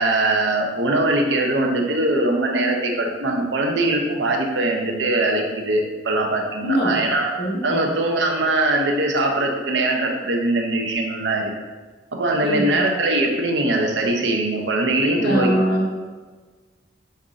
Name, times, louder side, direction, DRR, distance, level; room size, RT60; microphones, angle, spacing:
voice 1, 0.0-7.3 7.6-11.5 12.1-15.5, right 2 dB, 70° right, 2 dB, 0.6 m, -21 dB
voice 2, 6.6-7.1 7.4-7.9 12.4-12.8 15.1-15.9, equal, 60° left, -4 dB, 1.1 m, -22 dB
5.4 x 2.6 x 3.6 m, 1.4 s
head